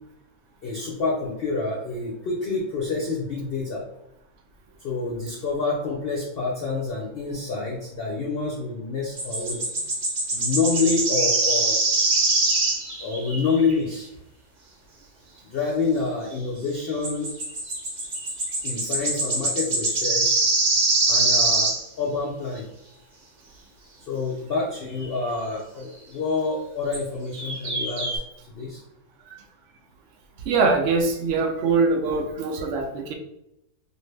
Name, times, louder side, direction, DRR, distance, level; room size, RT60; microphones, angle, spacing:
voice 1, 0.6-3.8 4.8-9.6 10.3-11.8 13.0-14.1 15.5-17.3 18.6-20.4 21.1-22.6 24.1-28.2 28.6-28.8, left 4 dB, 70° left, -2 dB, 0.5 m, -27 dB
sound 1, 9.2-13.7 17.0-21.8 25.0-25.1 26.9-27.0 27.3-28.2, right 3 dB, 40° right, 0.6 m, -23 dB
voice 2, 30.5-33.1, right 4 dB, 85° right, 3 dB, 0.5 m, -23 dB
2.7 x 2.5 x 3.2 m, 0.83 s
omnidirectional pair, 1.6 m